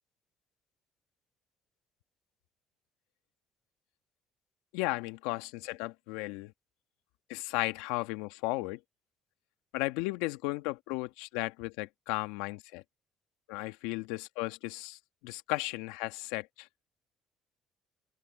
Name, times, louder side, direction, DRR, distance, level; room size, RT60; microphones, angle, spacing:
voice 1, 4.7-6.5 7.3-8.8 9.7-12.8 13.5-16.7, left 21 dB, 85° left, 1.6 m, -35 dB
open air
hypercardioid pair, 60°, 0 cm